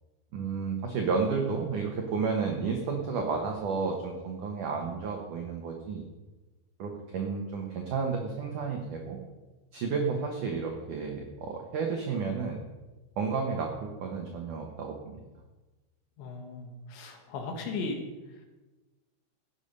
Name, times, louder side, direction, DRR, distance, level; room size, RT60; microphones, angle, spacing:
voice 1, 0.3-6.1 6.8-9.2 9.7-12.6 13.2-13.8 14.0-15.2, right 5 dB, 75° right, 2 dB, 1.9 m, -31 dB
voice 2, 16.2-18.0, left 3 dB, 70° left, 3 dB, 3.8 m, -37 dB
15.5 x 9.0 x 5.4 m, 1.1 s
omnidirectional pair, 5.5 m